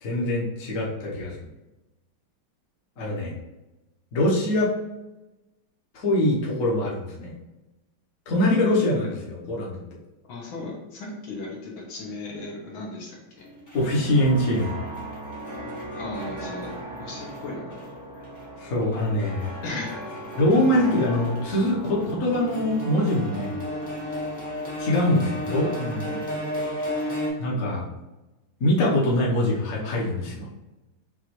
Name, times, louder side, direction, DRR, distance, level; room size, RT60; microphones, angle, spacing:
voice 1, 0.0-1.4 3.0-3.3 4.1-4.7 5.9-7.3 8.3-9.8 13.7-14.8 18.6-19.5 20.4-23.6 24.8-26.2 27.4-27.8 28.6-30.6, left 1 dB, 50° left, -5 dB, 1.2 m, -23 dB
voice 2, 10.3-13.4 16.0-17.9 19.6-20.0, left 2 dB, 75° left, -3 dB, 1.9 m, -36 dB
sound 1, 13.4-27.3, equal, 10° left, 0.9 m, -34 dB
6.2 x 2.5 x 3.0 m, 1.0 s
omnidirectional pair, 2.3 m